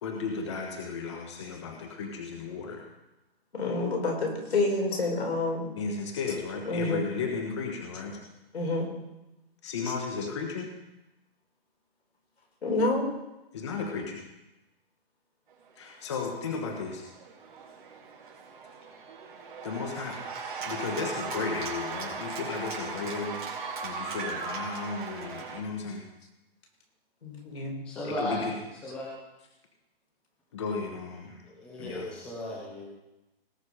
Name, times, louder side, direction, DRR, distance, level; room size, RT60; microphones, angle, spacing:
voice 1, 0.0-2.8 5.8-8.2 9.6-10.7 13.5-14.2 15.8-17.0 19.6-20.2 20.6-23.4 23.8-26.0 28.0-28.5 30.5-31.4 31.8-32.1, left 4 dB, 30° left, 2 dB, 1.3 m, -34 dB
voice 2, 3.5-5.7 6.7-7.1 8.5-8.9 12.6-13.1 27.2-27.8, left 2 dB, 85° left, 0 dB, 4.9 m, -28 dB
Cheering / Applause, 15.9-25.6, right 5 dB, 50° right, 3.2 m, -38 dB
voice 3, 27.8-29.1 31.3-32.8, left 1 dB, 5° left, -4 dB, 0.8 m, -36 dB
18.5 x 6.5 x 5.0 m, 0.97 s
hypercardioid pair, 175°, 31 cm